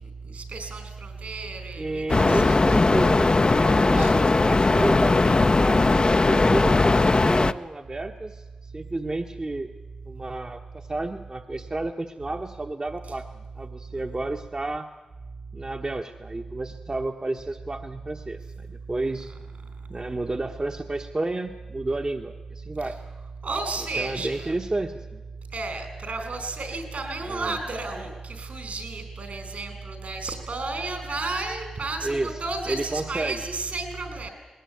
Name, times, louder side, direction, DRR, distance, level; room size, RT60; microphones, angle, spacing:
voice 1, 0.0-2.8 3.9-4.2 23.4-24.5 25.5-34.3, right 3 dB, 70° right, 7 dB, 4.6 m, -33 dB
voice 2, 1.8-9.7 10.0-14.9 15.5-19.3 19.9-23.0 24.0-25.2 27.3-27.6 32.0-32.4 32.7-33.4, right 2 dB, 35° right, 3 dB, 1.2 m, -31 dB
sound 1, 2.1-7.5, left 3 dB, 40° left, 0.7 m, -19 dB
20.0 x 18.5 x 9.3 m, 1.2 s
cardioid pair, 45°, 2 cm